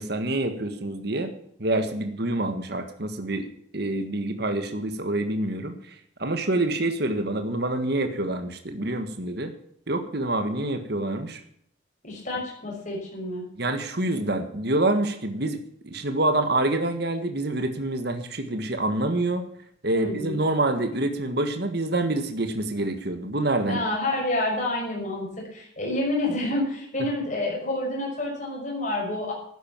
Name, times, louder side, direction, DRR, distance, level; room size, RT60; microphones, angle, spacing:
voice 1, 0.0-1.3 1.6-3.5 3.7-9.5 9.9-11.4 13.6-19.5 19.8-23.8, right 2 dB, 55° right, 7 dB, 1.6 m, -27 dB
voice 2, 12.0-13.4 19.9-20.4 23.7-29.3, left 1 dB, 40° left, -2 dB, 6.0 m, -28 dB
12.5 x 10.5 x 7.3 m, 0.67 s
head